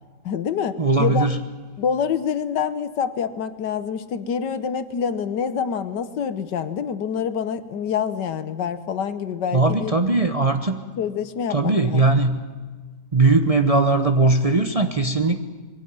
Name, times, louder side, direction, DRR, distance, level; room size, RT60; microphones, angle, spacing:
voice 1, 0.2-1.3 1.8-9.9 11.0-12.2, left 7 dB, 80° left, 12 dB, 1.7 m, -26 dB
voice 2, 0.8-1.4 9.5-10.8 11.5-12.4 13.1-15.4, right 3 dB, 30° right, 6 dB, 0.8 m, -19 dB
22.5 x 17.5 x 9.5 m, 1.4 s
omnidirectional pair, 1.8 m